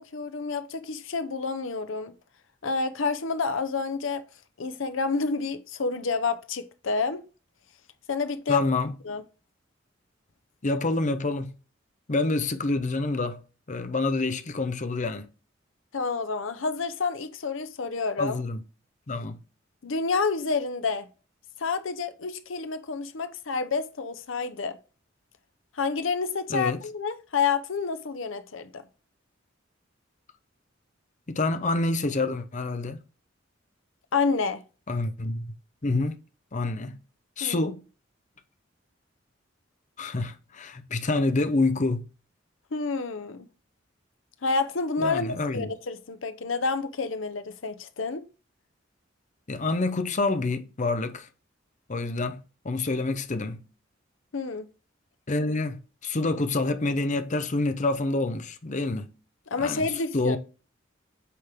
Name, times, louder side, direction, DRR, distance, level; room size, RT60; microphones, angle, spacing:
voice 1, 0.0-2.1 2.6-4.2 4.6-7.2 8.1-8.6 9.0-9.2 15.9-18.4 19.8-21.1 21.6-24.8 25.7-28.8 34.1-34.6 37.4-37.7 42.7-43.5 44.4-48.2 54.3-54.7 59.5-60.4, left 4 dB, 80° left, 0.8 m, -29 dB
voice 2, 8.5-8.9 10.6-11.5 12.1-13.4 13.7-15.3 18.2-18.6 19.1-19.4 26.5-26.8 31.3-33.0 34.9-35.5 35.8-36.2 36.5-37.0 37.4-37.8 40.0-42.1 45.0-45.7 49.5-51.3 51.9-53.6 55.3-59.1 59.6-60.4, left 2 dB, 40° left, 0.7 m, -27 dB
8.4 x 3.8 x 3.5 m
head